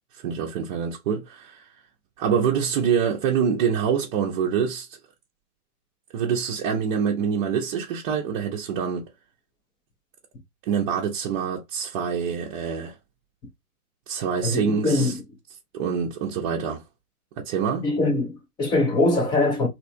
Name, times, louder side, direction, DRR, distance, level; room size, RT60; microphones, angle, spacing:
voice 1, 0.1-1.7 2.2-5.0 6.1-9.1 10.6-13.0 14.1-15.1 15.7-16.8 17.4-17.8, right 7 dB, 35° right, 0.7 m, -25 dB
voice 2, 14.4-15.2 17.8-19.7, left 2 dB, 10° left, 0.5 m, -22 dB
3.2 x 2.9 x 2.6 m
hypercardioid pair, 125°, 45 cm